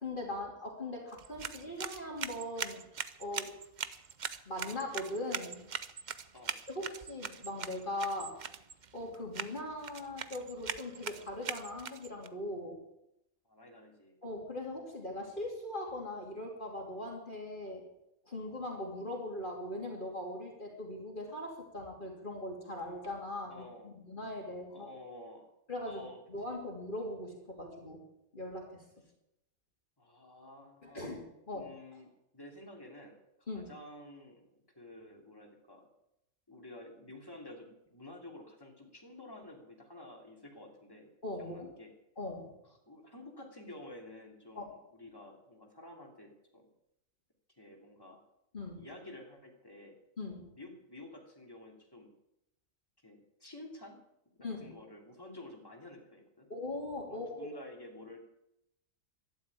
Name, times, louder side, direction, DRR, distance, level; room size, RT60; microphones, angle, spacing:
voice 1, 0.0-2.8 3.2-3.5 4.5-5.7 6.7-8.3 8.9-12.8 14.2-17.8 18.3-24.9 25.7-28.0 28.3-28.8 30.8-31.7 33.5-33.7 41.2-41.7 42.2-42.5 44.5-44.6 48.5-48.9 50.2-50.5 54.4-54.7 56.5-57.5, left 1 dB, 35° left, 0 dB, 3.0 m, -40 dB
sound 1, 1.1-12.3, right 7 dB, 45° right, 0.7 m, -42 dB
voice 2, 13.4-14.1 23.5-24.0 24.7-25.5 25.8-26.2 26.5-26.6 30.0-31.1 31.5-34.5 34.8-35.9 36.5-41.1 41.4-41.9 42.6-46.6 47.6-48.2 48.8-50.0 50.5-52.1 53.0-54.0 54.3-56.5 57.1-58.2, left 1 dB, 15° left, 0 dB, 3.0 m, -51 dB
12.5 x 11.5 x 8.4 m, 0.83 s
omnidirectional pair, 1.4 m